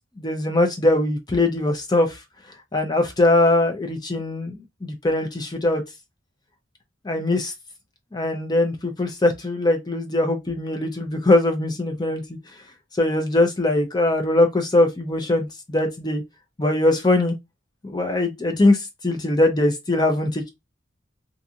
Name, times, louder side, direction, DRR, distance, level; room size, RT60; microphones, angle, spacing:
voice 1, 0.2-2.2 2.7-5.8 7.0-7.5 8.1-12.4 13.0-16.2 16.6-17.4 17.9-20.5, left 2 dB, 20° left, 0.5 m, -21 dB
2.5 x 2.4 x 2.7 m
head